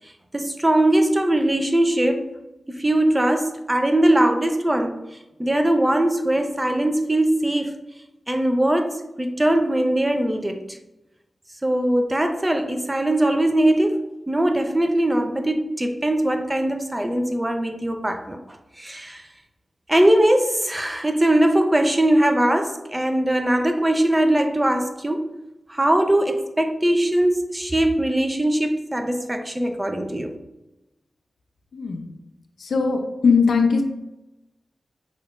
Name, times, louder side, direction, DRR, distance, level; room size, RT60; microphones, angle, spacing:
voice 1, 0.3-2.3 2.7-5.0 5.4-7.8 8.3-10.8 11.6-18.4 18.8-19.3 19.9-25.3 25.7-30.3, right 1 dB, 20° right, 6 dB, 0.6 m, -21 dB
voice 2, 31.7-32.1 32.6-33.8, left 5 dB, 80° left, 4 dB, 0.5 m, -20 dB
5.5 x 3.5 x 2.4 m, 0.95 s
cardioid pair, 50°, 0 cm